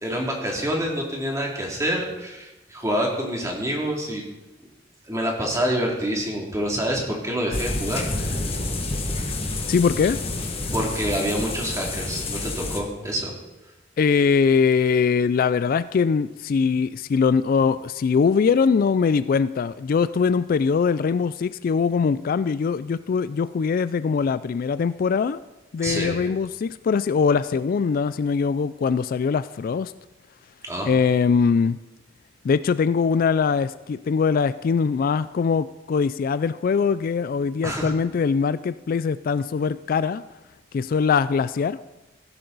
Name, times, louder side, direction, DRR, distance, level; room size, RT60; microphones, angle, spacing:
voice 1, 0.0-4.2 5.1-8.4 10.7-13.3 25.8-26.3 30.6-30.9 37.6-37.9, equal, 15° right, -1 dB, 2.7 m, -27 dB
sound 1, 7.5-12.8, left 2 dB, 30° left, 1.7 m, -29 dB
voice 2, 9.7-10.2 14.0-25.4 25.7-29.9 30.9-31.8 32.4-40.2 40.7-41.8, left 5 dB, 50° left, 15 dB, 0.3 m, -22 dB
15.5 x 11.0 x 4.0 m, 1.0 s
head